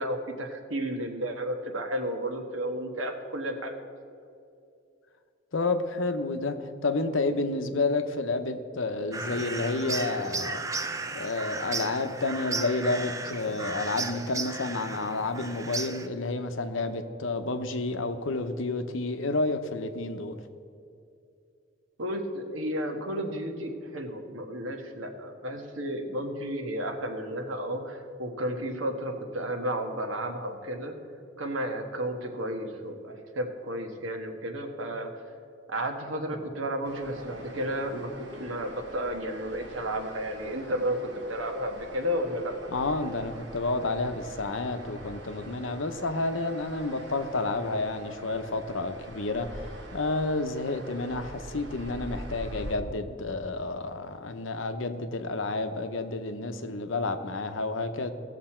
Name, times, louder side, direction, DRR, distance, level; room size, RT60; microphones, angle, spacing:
voice 1, 0.0-3.8 22.0-30.9 31.4-35.1 35.7-42.7, equal, 80° right, 4 dB, 1.4 m, -32 dB
voice 2, 5.5-6.6 6.8-20.3 42.7-49.7 49.9-58.1, left 3 dB, 75° left, 8 dB, 0.8 m, -30 dB
sound 1, 9.1-16.1, right 3 dB, 15° right, 0.4 m, -35 dB
sound 2, 36.8-52.8, right 1 dB, 60° right, 1.4 m, -44 dB
17.0 x 6.7 x 4.4 m, 2.5 s
head